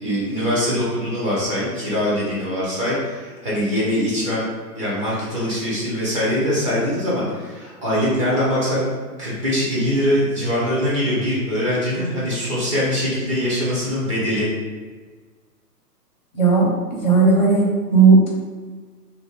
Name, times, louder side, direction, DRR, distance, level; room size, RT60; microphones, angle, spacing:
voice 1, 0.0-4.5 4.8-8.9 9.2-14.5, equal, 20° right, -8 dB, 0.5 m, -22 dB
voice 2, 16.3-16.7 17.0-18.3, right 4 dB, 30° left, -3 dB, 0.5 m, -14 dB
2.6 x 2.1 x 3.1 m, 1.4 s
hypercardioid pair, 140°, 50 cm